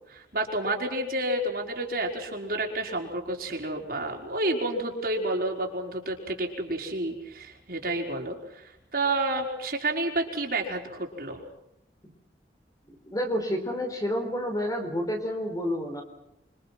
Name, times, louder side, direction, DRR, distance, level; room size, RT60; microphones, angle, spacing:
voice 1, 0.1-11.4, right 2 dB, 55° right, 1 dB, 5.0 m, -30 dB
voice 2, 12.9-16.0, equal, 20° left, 4 dB, 4.2 m, -30 dB
28.0 x 24.5 x 6.1 m, 0.85 s
head